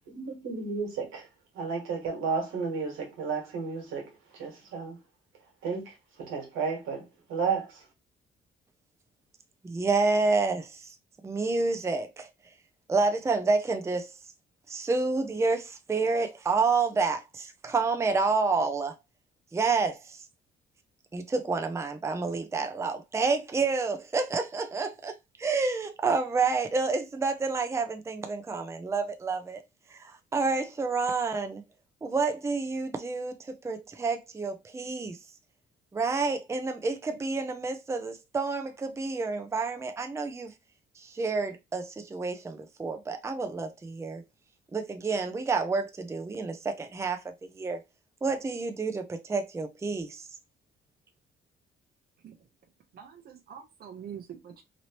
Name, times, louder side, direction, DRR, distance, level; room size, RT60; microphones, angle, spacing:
voice 1, 0.1-1.3 1.5-5.0 5.6-7.8, right 5 dB, 90° right, 1.4 m, -33 dB
voice 2, 9.6-10.9 11.2-12.3 12.9-14.1 14.7-18.9 19.5-20.2 21.1-29.6 29.9-31.6 32.0-35.2 35.9-40.5 41.0-44.2 44.7-47.8 48.2-50.2, right 4 dB, 15° right, 0.5 m, -29 dB
voice 3, 52.9-54.6, right 8 dB, 50° right, 0.7 m, -45 dB
3.0 x 2.8 x 2.9 m
cardioid pair, 90°, 20 cm